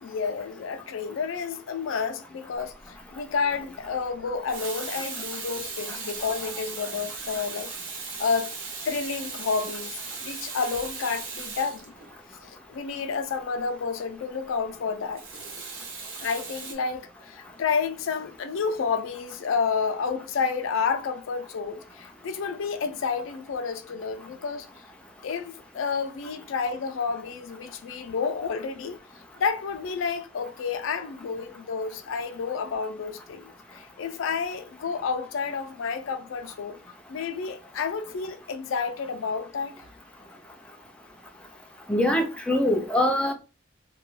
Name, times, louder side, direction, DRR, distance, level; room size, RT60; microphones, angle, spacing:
voice 1, 0.0-7.7 8.2-8.6 8.8-11.9 12.4-15.2 16.2-24.7 25.2-29.0 29.4-36.8 37.1-39.7, left 5 dB, 90° left, 0.4 m, -30 dB
Water tap faucet / Sink (filling or washing), 2.7-3.0 4.3-12.5 15.2-16.7, right 4 dB, 85° right, 0.8 m, -37 dB
voice 2, 41.9-43.3, left 1 dB, 5° left, 0.4 m, -23 dB
2.3 x 2.2 x 3.1 m
head